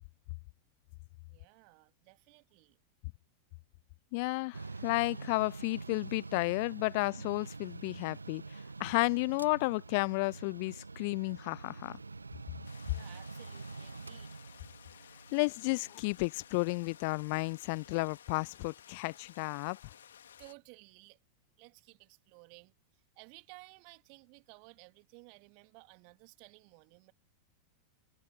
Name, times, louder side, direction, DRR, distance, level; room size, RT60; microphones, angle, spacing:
voice 1, 1.3-2.8 12.9-14.3 20.4-21.2 21.6-27.1, right 40 dB or more, 45° right, 2.7 m, -57 dB
voice 2, 4.1-8.4 8.8-12.0 15.3-19.8, left 28 dB, 45° left, 0.3 m, -32 dB
Mechanical fan, 4.5-17.9, right 3 dB, 80° right, 0.7 m, -46 dB
sound 1, 12.6-20.5, left 9 dB, 65° left, 2.9 m, -56 dB
figure-of-eight pair, 90°, 0 cm